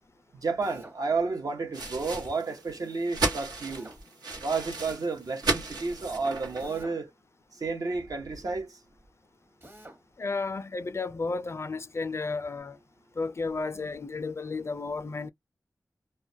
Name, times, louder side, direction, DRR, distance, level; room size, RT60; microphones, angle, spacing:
voice 1, 0.4-3.9 4.4-7.1 7.6-8.8, right 4 dB, 65° right, 0.8 m, -31 dB
Drill, 0.6-1.0 3.6-4.0 6.6-7.0 9.6-10.0, right 1 dB, 35° right, 1.0 m, -49 dB
sound 1, 1.7-6.8, right 3 dB, 85° right, 1.0 m, -34 dB
voice 2, 10.2-12.8 13.2-15.3, left 3 dB, 40° left, 0.3 m, -33 dB
2.2 x 2.1 x 2.6 m
cardioid pair, 40°, 7 cm